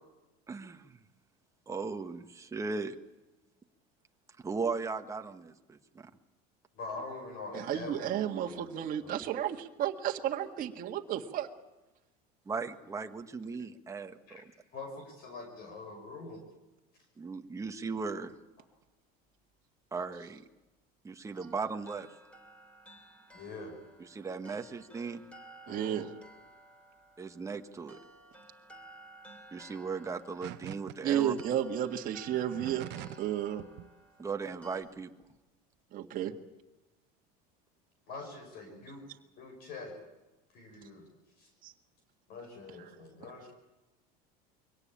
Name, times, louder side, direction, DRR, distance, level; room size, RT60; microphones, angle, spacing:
voice 1, 0.5-1.0 1.7-2.9 4.4-6.1 12.4-14.5 17.2-18.3 19.9-20.4 21.0-22.1 24.0-25.2 27.2-28.0 29.5-31.3 34.2-35.1, right 4 dB, 15° right, 6 dB, 1.4 m, -37 dB
voice 2, 6.8-8.1 8.4-8.7 9.0-9.2 14.3-14.4 14.7-16.4 23.3-23.7 24.5-24.6 25.7-26.1 38.1-39.0 39.4-40.0 40.5-41.0 41.4-41.5 42.3-43.5, left 3 dB, 50° left, 4 dB, 5.8 m, -44 dB
voice 3, 7.5-11.5 25.7-26.1 31.0-32.9 33.2-33.6 35.9-36.3 41.6-41.7, right 10 dB, 45° right, 2 dB, 1.8 m, -32 dB
sound 1, 21.4-34.8, right 1 dB, 5° left, 3.2 m, -55 dB
sound 2, 30.4-31.0 31.4-31.5 32.3-33.3 33.6-33.9, right 15 dB, 60° right, 1.0 m, -43 dB
23.5 x 18.0 x 8.7 m, 1.1 s
supercardioid pair, 130°, 20 cm